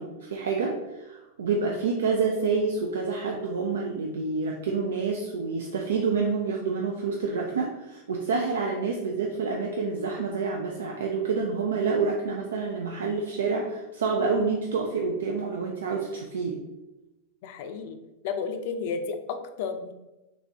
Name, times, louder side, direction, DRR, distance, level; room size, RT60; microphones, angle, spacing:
voice 1, 0.0-16.6, right 4 dB, 85° right, 1 dB, 0.4 m, -28 dB
voice 2, 17.4-18.0 18.2-19.9, left 5 dB, 60° left, 8 dB, 0.4 m, -32 dB
3.1 x 2.5 x 3.4 m, 1.0 s
hypercardioid pair, 105°, 0 cm